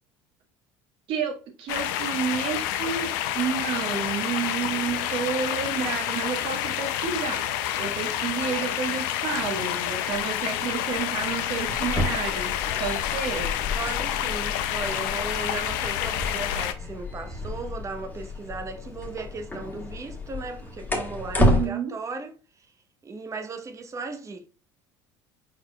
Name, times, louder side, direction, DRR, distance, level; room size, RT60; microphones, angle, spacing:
voice 1, 1.1-7.5 7.8-13.6 21.4-21.9, right 7 dB, 60° right, 1.5 m, -30 dB
sound 1, 1.7-16.7, left 11 dB, 75° left, 0.5 m, -29 dB
voice 2, 4.6-4.9 13.8-22.3 22.6-22.7 23.0-24.5, right 3 dB, 30° right, 1.0 m, -36 dB
sound 2, 11.6-21.7, left 1 dB, 15° left, 1.6 m, -30 dB
4.4 x 4.4 x 2.3 m
hypercardioid pair, 75°, 11 cm